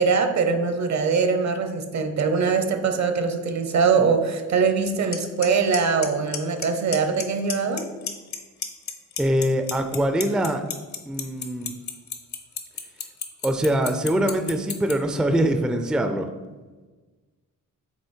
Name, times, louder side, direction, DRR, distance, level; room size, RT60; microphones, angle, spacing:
voice 1, 0.0-7.8, right 5 dB, 60° right, 7 dB, 0.8 m, -22 dB
Clock, 5.1-5.2 5.4-5.8 6.0-6.6 6.9-7.2 7.5-8.4 8.6-14.9, left 8 dB, 60° left, 0.8 m, -29 dB
voice 2, 9.2-10.6 11.1-11.7 13.4-16.3, right 1 dB, ahead, 6 dB, 0.4 m, -23 dB
8.0 x 3.0 x 4.4 m, 1.3 s
cardioid pair, 110°, 32 cm